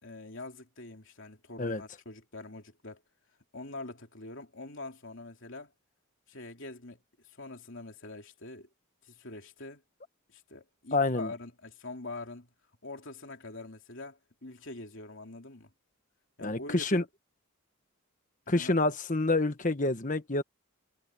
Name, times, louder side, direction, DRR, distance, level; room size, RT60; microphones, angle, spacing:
voice 1, 0.0-3.0 3.5-5.7 6.3-8.7 9.0-9.8 10.3-12.5 12.8-15.7 16.4-17.1 18.5-18.7, left 2 dB, 55° left, 3.4 m, -44 dB
voice 2, 10.9-11.3 16.4-17.0 18.5-20.4, left 2 dB, 35° left, 1.3 m, -27 dB
head